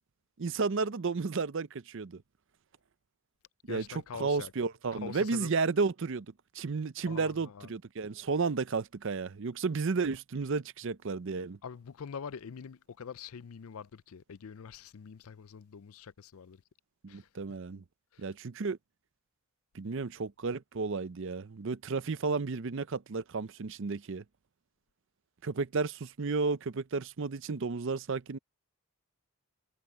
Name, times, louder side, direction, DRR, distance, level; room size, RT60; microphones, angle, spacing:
voice 1, 0.4-2.2 3.7-6.3 6.5-11.6 17.0-17.8 18.2-18.8 19.7-24.2 25.4-28.4, right 4 dB, 60° right, 0.6 m, -32 dB
voice 2, 3.7-4.5 4.9-5.5 7.1-7.7 11.6-16.6 17.1-17.3 18.1-18.3, left 6 dB, 75° left, 0.5 m, -45 dB
head